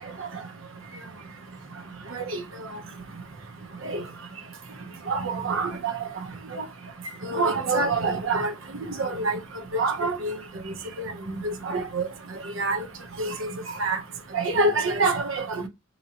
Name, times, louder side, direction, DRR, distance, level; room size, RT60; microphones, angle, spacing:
voice 1, 5.1-5.9 6.6-6.7 7.2-8.5 9.0-9.4 9.7-10.4 11.0-11.1 11.4-12.0 12.6-12.8 13.2-13.5 13.8-14.0 14.3-15.7, right 3 dB, 70° right, 0.8 m, -26 dB
3.8 x 2.9 x 2.8 m
head